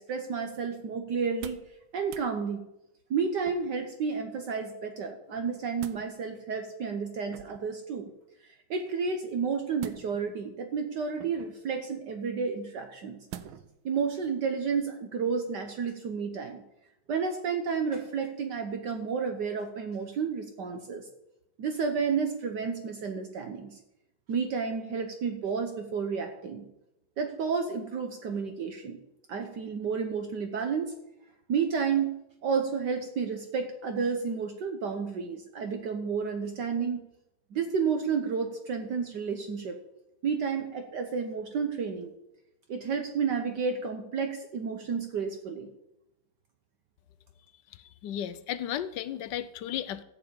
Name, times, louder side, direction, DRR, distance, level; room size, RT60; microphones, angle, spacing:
voice 1, 0.0-1.6 1.9-2.6 3.1-8.1 8.4-13.2 13.8-16.6 17.1-21.1 21.6-23.8 24.3-26.7 27.2-29.0 29.3-30.9 31.5-32.1 32.4-37.0 37.5-39.8 40.2-42.1 42.7-45.7, right 5 dB, 65° right, 5 dB, 1.4 m, -31 dB
sound 1, 1.2-1.7 2.0-2.3 3.4-3.9 5.3-6.1 7.3-7.8 9.8-10.4 11.2-11.6 13.3-13.8 14.2-14.3, right 10 dB, 90° right, 1.5 m, -46 dB
voice 2, 47.8-50.0, left 10 dB, 70° left, 13 dB, 1.2 m, -34 dB
14.0 x 4.9 x 8.6 m, 0.89 s
omnidirectional pair, 2.2 m